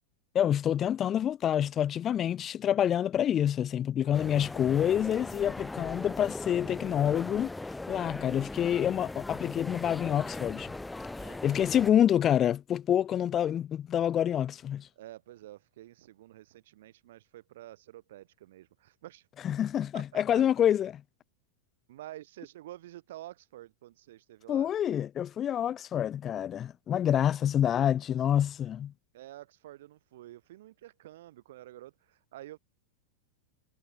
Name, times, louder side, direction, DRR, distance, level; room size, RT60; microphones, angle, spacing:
voice 1, 0.3-7.5 7.9-10.7 11.4-14.9 19.4-20.9 24.5-28.9, left 10 dB, 25° left, 1.4 m, -27 dB
voice 2, 4.0-4.4 11.2-11.8 15.0-19.3 19.9-20.4 21.9-24.7 29.1-32.6, right 14 dB, 55° right, 7.4 m, -49 dB
sound 1, 4.1-11.9, left 2 dB, 5° left, 3.1 m, -39 dB
figure-of-eight pair, 90°, 0 cm